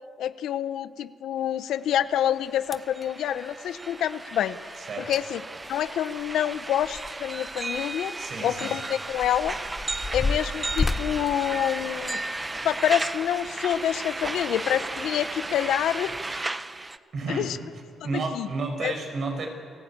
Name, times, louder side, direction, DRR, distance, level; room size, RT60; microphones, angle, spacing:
voice 1, 0.2-4.6 5.1-5.4 5.7-8.2 8.4-9.6 10.1-12.2 12.6-16.4 17.3-17.6 18.3-18.5 18.8-18.9, left 10 dB, 75° left, 13 dB, 0.8 m, -27 dB
sound 1, 1.9-2.0 2.2-17.0, right 2 dB, 20° right, 0.8 m, -35 dB
sound 2, 2.2-2.3 2.6-3.1 4.8-4.9 5.1-5.2 5.6-7.4 7.7-7.8 8.5-12.3 12.9-13.1 13.7-13.8, left 3 dB, 25° left, 0.8 m, -32 dB
voice 2, 8.2-8.7 17.1-17.5 18.0-19.5, right 3 dB, 55° right, 3 dB, 6.2 m, -31 dB
29.0 x 16.5 x 8.9 m, 2.3 s
cardioid pair, 90°, 0 cm